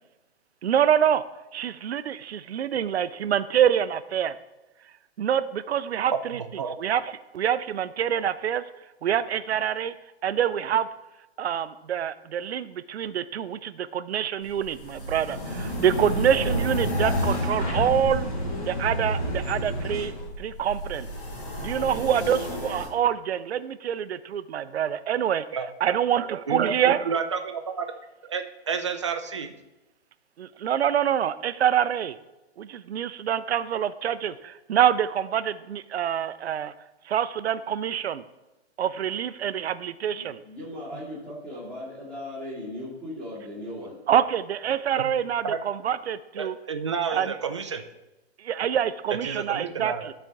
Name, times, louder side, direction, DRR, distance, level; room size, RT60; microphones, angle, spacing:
voice 1, 0.6-1.2 1.5-4.3 5.2-6.4 6.8-8.7 9.0-9.9 10.2-10.9 11.4-18.3 18.6-20.1 20.4-21.1 21.6-25.5 25.8-27.2 30.4-32.2 32.6-36.7 37.1-38.2 38.8-40.4 44.1-46.6 47.1-47.3 48.4-50.1, right 9 dB, 75° right, 14 dB, 0.6 m, -26 dB
voice 2, 6.3-6.7 25.5-25.7 26.5-27.9 28.3-29.5 45.0-45.1 45.4-45.6 46.4-47.8 49.2-50.1, right 6 dB, 30° right, 6 dB, 0.4 m, -30 dB
sound 1, 14.4-22.9, equal, 55° left, 2.5 m, -32 dB
sound 2, 15.2-20.3, equal, 35° left, 1.8 m, -31 dB
voice 3, 40.1-44.0, left 1 dB, 5° left, -8 dB, 1.7 m, -38 dB
12.5 x 4.4 x 3.5 m, 1.0 s
hypercardioid pair, 170°, 32 cm